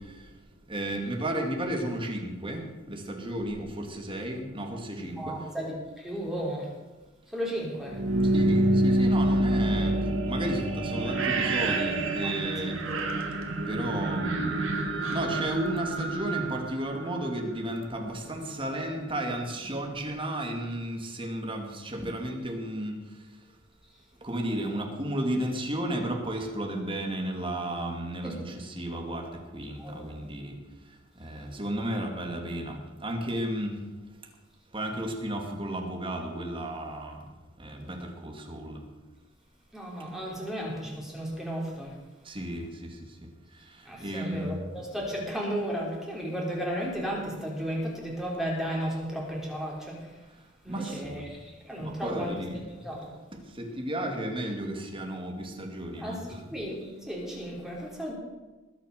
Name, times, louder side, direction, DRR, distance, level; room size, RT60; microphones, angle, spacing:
voice 1, 0.7-2.6 2.9-5.3 8.3-12.7 13.7-14.7 15.1-23.0 24.2-29.2 29.5-30.6 31.2-33.7 34.7-37.2 37.6-38.8 42.3-42.9 44.0-44.6 50.7-51.2 51.8-52.6 53.6-56.4, right 1 dB, 25° right, 2 dB, 2.3 m, -33 dB
voice 2, 5.2-6.7 7.3-8.0 9.8-9.9 12.9-13.2 28.2-28.3 29.8-30.1 39.7-41.9 43.9-49.9 50.6-51.4 51.6-52.3 52.7-53.1 56.0-56.2 56.5-58.1, equal, ahead, -3 dB, 3.5 m, -34 dB
sound 1, 7.8-17.7, right 1 dB, 70° right, 2.1 m, -27 dB
20.5 x 7.0 x 6.6 m, 1.2 s
head